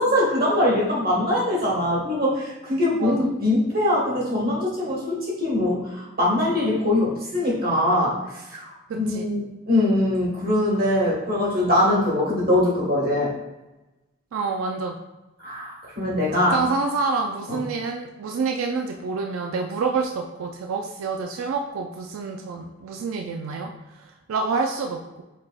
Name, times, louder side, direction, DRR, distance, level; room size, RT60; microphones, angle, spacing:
voice 1, 0.0-8.2 8.5-13.3 15.4-16.5 17.5-17.6, left 1 dB, 45° right, -4 dB, 1.4 m, -22 dB
voice 2, 8.9-9.3 14.3-15.0 16.5-25.2, right 4 dB, 90° right, 3 dB, 0.4 m, -28 dB
5.6 x 3.4 x 2.3 m, 1.0 s
head